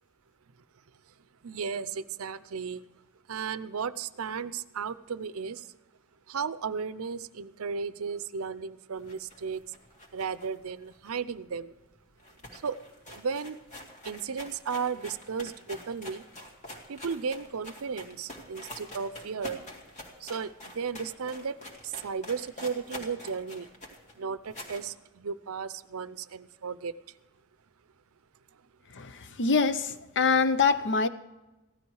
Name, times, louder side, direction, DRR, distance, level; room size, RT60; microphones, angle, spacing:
voice 1, 1.4-2.8 3.3-5.7 6.3-9.6 10.1-11.7 12.5-12.8 13.1-13.6 14.0-16.2 16.9-19.6 20.2-23.7 24.2-26.9 29.3-29.4, right 6 dB, 70° right, 15 dB, 0.6 m, -35 dB
sound 1, 9.0-11.6 11.9-12.0 12.2-24.9, left 1 dB, 35° left, 2.2 m, -46 dB
voice 2, 28.9-31.1, left 4 dB, 55° left, 12 dB, 0.7 m, -25 dB
16.0 x 12.5 x 4.7 m, 1.0 s
head